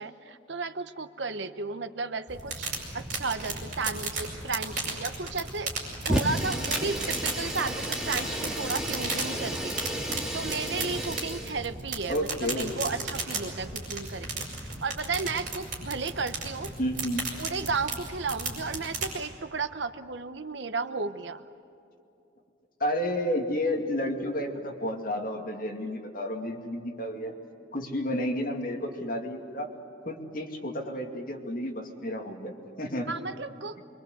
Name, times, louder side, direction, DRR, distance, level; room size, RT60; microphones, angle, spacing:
voice 1, 0.0-2.7 2.9-5.7 6.1-16.7 17.4-21.4 33.1-33.8, right 4 dB, 70° right, 11 dB, 1.0 m, -34 dB
sound 1, 2.3-19.1, right 3 dB, 45° right, 6.4 m, -35 dB
Fire, 6.0-11.6, equal, 5° right, 2.1 m, -32 dB
voice 2, 12.1-12.7 16.8-17.2 22.8-27.3 27.7-29.7 30.1-33.1, left 1 dB, 45° left, 1 dB, 2.6 m, -31 dB
25.0 x 23.5 x 8.1 m, 2.7 s
head